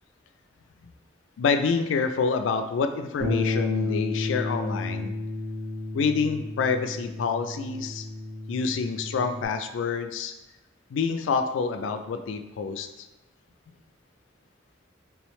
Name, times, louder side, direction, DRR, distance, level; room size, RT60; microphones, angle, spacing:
voice 1, 1.4-5.1 5.9-8.1 8.5-10.3 10.9-13.1, left 5 dB, 80° left, 8 dB, 0.3 m, -27 dB
Bass guitar, 3.2-9.5, left 3 dB, 50° right, 0.6 m, -31 dB
3.4 x 3.1 x 3.1 m, 1.1 s
head